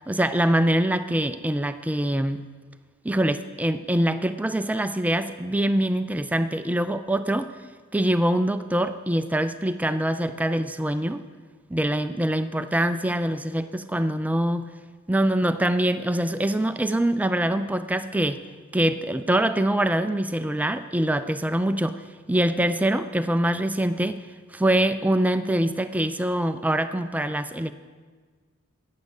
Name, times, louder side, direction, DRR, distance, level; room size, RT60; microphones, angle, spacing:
voice 1, 0.1-2.5 3.0-7.5 7.9-11.2 11.7-14.7 15.1-18.4 18.7-24.2 24.5-27.7, right 1 dB, 5° right, 10 dB, 0.4 m, -24 dB
14.0 x 9.3 x 7.1 m, 1.5 s
head